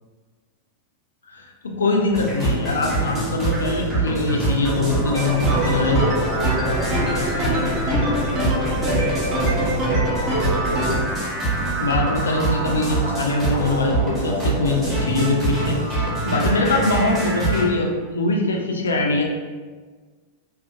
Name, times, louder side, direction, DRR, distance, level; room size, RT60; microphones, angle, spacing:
voice 1, 1.3-6.2 11.8-19.2, left 2 dB, 70° left, 1 dB, 0.3 m, -22 dB
sound 1, 2.1-17.6, right 2 dB, 10° right, 1.0 m, -24 dB
sound 2, 5.1-11.0, equal, 30° right, 0.7 m, -24 dB
voice 2, 6.9-7.9 8.5-10.0 16.5-17.0, left 1 dB, 80° right, -5 dB, 0.7 m, -35 dB
2.6 x 2.0 x 2.4 m, 1.4 s
figure-of-eight pair, 90°, 0 cm